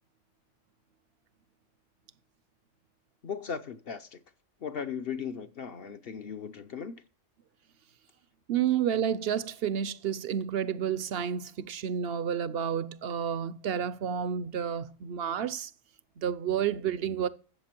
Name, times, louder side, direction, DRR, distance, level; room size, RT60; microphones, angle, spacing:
voice 1, 3.2-4.2 4.6-6.9, left 7 dB, 55° left, 0.9 m, -37 dB
voice 2, 8.5-15.7 16.2-17.3, right 8 dB, 60° right, 0.8 m, -30 dB
13.5 x 8.1 x 4.4 m
omnidirectional pair, 1.2 m